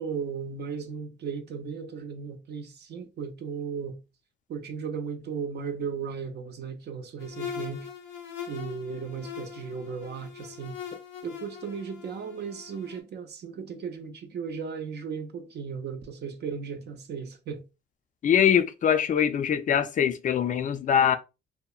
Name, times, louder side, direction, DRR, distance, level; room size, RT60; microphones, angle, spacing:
voice 1, 0.0-4.0 4.5-7.9 8.5-10.8 11.2-17.6, right 6 dB, 60° right, 0.5 m, -36 dB
sound 1, 7.2-13.0, left 8 dB, 75° left, 0.7 m, -41 dB
voice 2, 18.2-21.2, left 8 dB, 40° left, 0.4 m, -23 dB
2.8 x 2.1 x 2.3 m
cardioid pair, 90°, 20 cm